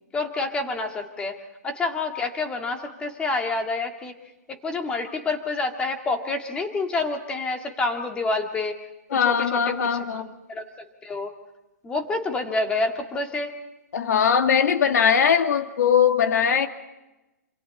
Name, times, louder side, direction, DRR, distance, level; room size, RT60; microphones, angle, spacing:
voice 1, 0.1-1.4 1.6-4.1 4.5-8.7 9.3-11.3 11.8-13.5, left 3 dB, 10° left, 4 dB, 2.0 m, -28 dB
voice 2, 9.1-10.3 13.9-16.7, left 7 dB, 70° left, 7 dB, 2.1 m, -20 dB
27.5 x 27.0 x 4.1 m, 0.99 s
hypercardioid pair, 160°, 9 cm